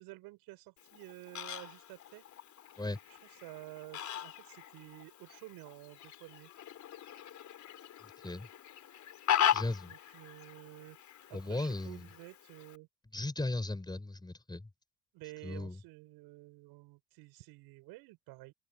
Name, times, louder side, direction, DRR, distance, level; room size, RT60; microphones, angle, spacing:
voice 1, 0.0-2.2 3.1-6.5 9.9-11.0 11.3-12.9 15.1-18.5, right 21 dB, 75° right, 7.7 m, -51 dB
Fowl, 0.8-12.8, left 10 dB, 50° left, 3.7 m, -38 dB
voice 2, 9.5-9.9 11.3-12.1 13.1-14.7 15.4-15.8, left 2 dB, 10° left, 5.4 m, -36 dB
open air
supercardioid pair, 100°, 38 cm